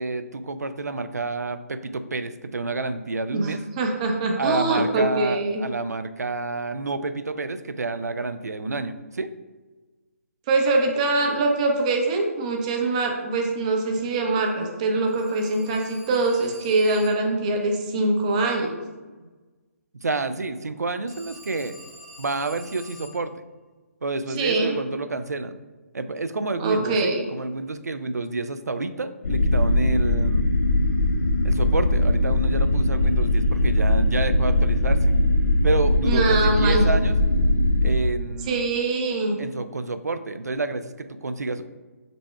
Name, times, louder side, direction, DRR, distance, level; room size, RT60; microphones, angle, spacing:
voice 1, 0.0-3.6 4.4-9.3 19.2-19.3 20.0-21.8 22.2-23.3 24.0-25.5 25.9-30.4 31.4-35.1 35.6-37.2 37.8-38.7 39.4-41.6, right 3 dB, 80° right, 11 dB, 0.3 m, -29 dB
voice 2, 3.3-5.6 10.5-18.8 24.4-24.8 26.6-27.3 36.1-36.8 38.5-39.4, right 2 dB, 25° right, 2 dB, 0.5 m, -23 dB
Telephone, 15.1-17.4 21.1-23.3, equal, 5° left, 0.8 m, -47 dB
sound 1, 29.2-38.0, left 1 dB, 65° left, 0.5 m, -20 dB
5.2 x 4.3 x 2.2 m, 1.3 s
figure-of-eight pair, 140°, 9 cm